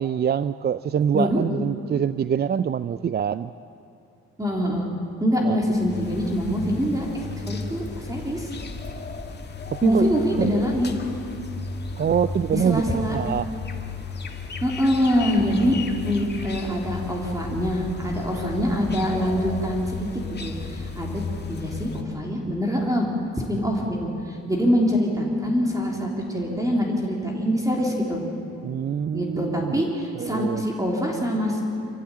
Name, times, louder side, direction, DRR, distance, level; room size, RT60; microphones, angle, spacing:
voice 1, 0.0-3.5 5.4-5.6 9.7-10.1 10.4-10.6 12.0-13.5 28.6-29.9 30.2-30.6, right 8 dB, 35° right, 15 dB, 0.4 m, -25 dB
voice 2, 4.4-4.9 5.2-8.5 9.8-11.0 12.5-13.2 14.6-20.1 20.4-21.2 21.5-23.1 23.4-28.2 29.1-31.6, equal, 10° right, -1 dB, 3.5 m, -24 dB
sound 1, 5.7-22.0, left 4 dB, 35° left, 2.1 m, -34 dB
25.5 x 14.5 x 8.7 m, 2.7 s
cardioid pair, 90°, 30 cm